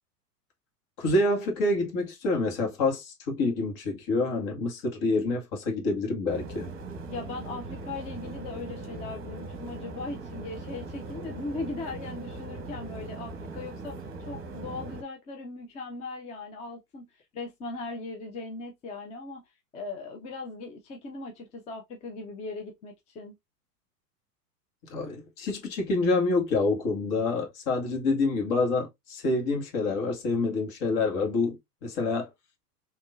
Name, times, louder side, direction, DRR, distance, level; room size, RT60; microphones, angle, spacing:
voice 1, 1.0-6.7 24.9-32.3, left 3 dB, 45° left, 1.8 m, -27 dB
sound 1, 6.3-15.0, right 3 dB, 25° right, 1.0 m, -40 dB
voice 2, 7.1-17.1 17.3-19.4 19.7-23.4, left 3 dB, 15° left, 0.4 m, -39 dB
3.6 x 2.9 x 2.4 m
hypercardioid pair, 105°, 48 cm